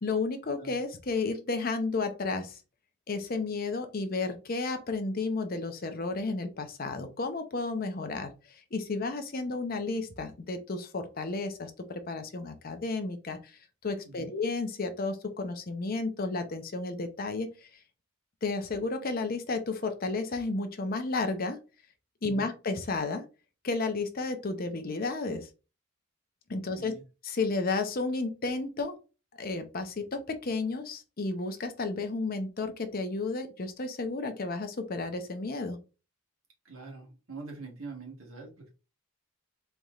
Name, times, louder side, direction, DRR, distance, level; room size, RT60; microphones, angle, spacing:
voice 1, 0.0-2.6 3.1-17.7 18.4-21.6 22.2-23.2 23.6-25.5 26.5-26.9 27.2-29.0 29.4-35.8, left 3 dB, 45° left, 8 dB, 0.6 m, -32 dB
voice 2, 36.6-38.7, right 4 dB, 80° right, 1 dB, 1.5 m, -44 dB
4.2 x 3.3 x 2.4 m, 0.32 s
head